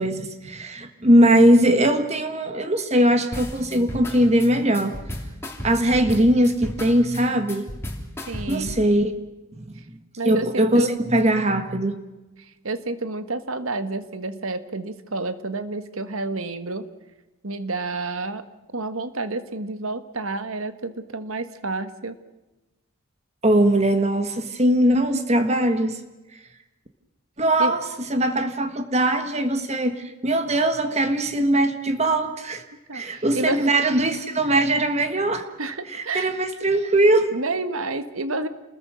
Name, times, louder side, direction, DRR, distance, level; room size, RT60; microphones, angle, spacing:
voice 1, 0.0-4.9 5.6-7.6 8.5-9.1 9.5-9.7 10.2-12.0 23.4-26.0 27.4-27.8 28.1-32.6 32.9-35.5 35.9-37.3, right 1 dB, 30° right, 8 dB, 1.6 m, -20 dB
sound 1, 3.3-8.8, left 1 dB, 10° left, 3.2 m, -34 dB
voice 2, 8.3-8.8 9.8-9.9 10.2-10.9 12.4-16.9 17.4-18.4 18.7-22.1 27.6-27.7 32.9-33.6 35.6-36.4 37.3-38.5, right 2 dB, 75° right, 11 dB, 1.6 m, -29 dB
29.0 x 21.0 x 6.5 m, 1.1 s
head